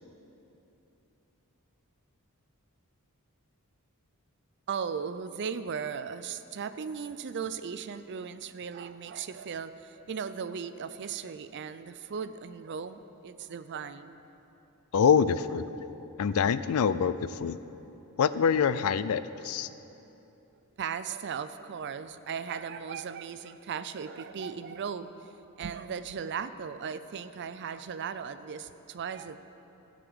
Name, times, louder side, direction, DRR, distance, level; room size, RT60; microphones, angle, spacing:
voice 1, 4.7-14.2 20.8-25.3 25.6-29.4, right 6 dB, 50° right, 12 dB, 0.4 m, -37 dB
voice 2, 14.9-15.6 16.2-17.6 18.2-19.7, left 7 dB, 70° left, 14 dB, 0.4 m, -25 dB
15.0 x 5.0 x 7.8 m, 3.0 s
head